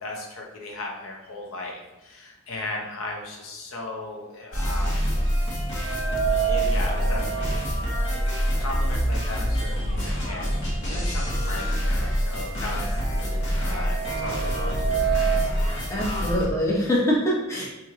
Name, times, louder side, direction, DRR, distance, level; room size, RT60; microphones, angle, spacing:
voice 1, 0.0-5.2 6.2-16.4, left 2 dB, 80° left, -1 dB, 0.8 m, -37 dB
sound 1, 4.5-16.4, equal, 65° left, 1.2 m, -26 dB
sound 2, 5.8-9.9 10.2-10.3 11.3-11.4 11.8-15.6, right 10 dB, 70° right, 0.5 m, -31 dB
voice 2, 15.9-17.7, equal, 15° left, -5 dB, 0.8 m, -24 dB
3.0 x 2.8 x 3.6 m, 1.1 s
head